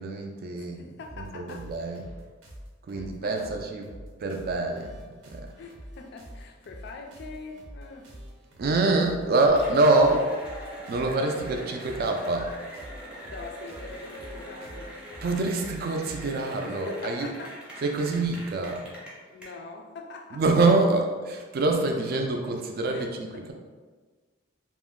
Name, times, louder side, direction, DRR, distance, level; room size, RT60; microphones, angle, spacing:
voice 1, 0.0-0.8 1.2-2.1 2.9-3.9 4.2-5.6 8.6-10.2 10.9-12.5 15.2-17.3 17.8-18.9 20.3-23.5, right 2 dB, 50° right, 3 dB, 0.3 m, -25 dB
voice 2, 0.5-1.7 2.9-3.5 5.6-8.1 9.8-10.1 11.0-11.7 13.2-15.0 16.7-17.6 19.3-20.4 22.9-23.1 23.3-23.5, left 4 dB, 60° left, 3 dB, 0.3 m, -43 dB
sound 1, 1.0-16.4, equal, 85° right, 0.6 m, -46 dB
Cheering / Applause, 9.5-19.4, equal, 5° right, 0.7 m, -42 dB
2.6 x 2.1 x 3.6 m, 1.4 s
head